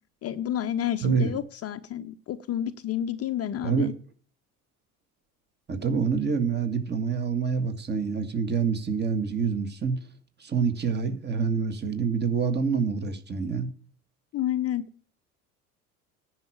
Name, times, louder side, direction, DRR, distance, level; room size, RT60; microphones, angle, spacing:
voice 1, 0.2-3.9 14.3-14.8, left 11 dB, 30° left, 0.8 m, -30 dB
voice 2, 1.0-1.4 3.6-3.9 5.7-10.0 10.4-13.7, right 5 dB, 20° right, 1.8 m, -26 dB
10.5 x 6.2 x 8.9 m
figure-of-eight pair, 65°, 46 cm